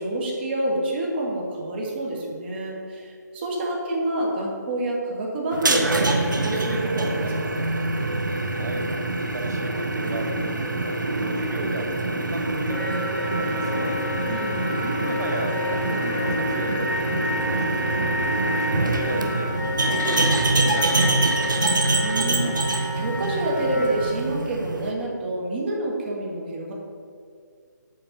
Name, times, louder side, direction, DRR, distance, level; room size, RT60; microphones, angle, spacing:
voice 1, 0.0-7.6 14.3-14.7 22.0-26.7, right 1 dB, 35° right, -2 dB, 1.7 m, -28 dB
sound 1, 5.5-24.9, right 2 dB, 85° right, 0.9 m, -25 dB
voice 2, 8.5-8.9 9.2-14.0 14.7-17.0 17.2-19.5 19.8-21.6, right 2 dB, 65° right, 3 dB, 1.2 m, -35 dB
Wind instrument woodwind instrument, 12.7-24.1, equal, 5° left, 1.1 m, -30 dB
7.7 x 4.5 x 5.8 m, 2.2 s
figure-of-eight pair, 155°, 10 cm